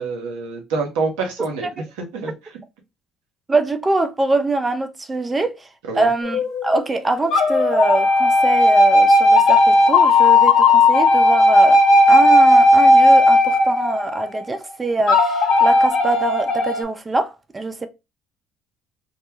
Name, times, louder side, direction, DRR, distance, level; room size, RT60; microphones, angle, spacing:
voice 1, 0.0-2.6 5.9-6.1, right 4 dB, 75° right, 0.7 m, -27 dB
voice 2, 3.5-5.7 5.9-11.8 12.1-17.9, right 2 dB, 25° right, 0.5 m, -23 dB
sound 1, 6.2-6.8 7.3-14.4 15.1-16.8, left 1 dB, 60° left, 0.5 m, -14 dB
2.1 x 2.1 x 3.1 m
hypercardioid pair, 55°, 0 cm